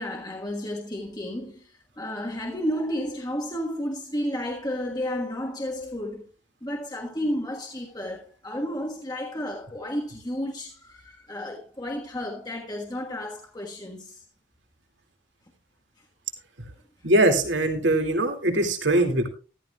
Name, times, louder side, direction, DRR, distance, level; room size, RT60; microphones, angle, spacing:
voice 1, 0.0-6.2 6.6-14.2, equal, 20° left, 1.4 m, -32 dB
voice 2, 17.0-19.3, right 1 dB, 70° right, 2.3 m, -21 dB
14.0 x 13.0 x 2.3 m
head